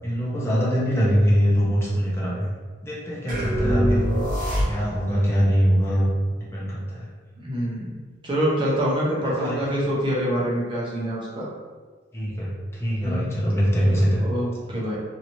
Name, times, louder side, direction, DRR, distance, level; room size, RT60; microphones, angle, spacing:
voice 1, 0.0-2.4 2.8-4.0 4.7-6.1 6.4-7.1 9.2-9.6 12.1-14.2, equal, 15° left, -7 dB, 0.7 m, -23 dB
sound 1, 3.3-5.2, equal, 45° right, 1.2 m, -25 dB
voice 2, 3.6-4.3 7.4-8.0 8.2-11.5 13.0-13.3 13.8-15.0, equal, 25° right, -6 dB, 0.8 m, -26 dB
3.0 x 2.8 x 2.7 m, 1.4 s
head